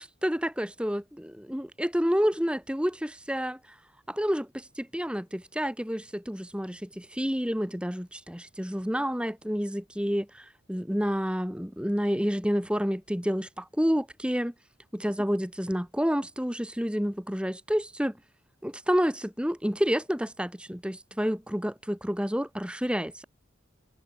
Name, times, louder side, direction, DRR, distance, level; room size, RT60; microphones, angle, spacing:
voice 1, 0.0-3.6 4.2-4.5 4.9-6.8 7.2-10.3 10.7-13.5 13.8-14.5 14.9-18.1 18.6-23.3, equal, 5° right, 2.1 m, -29 dB
head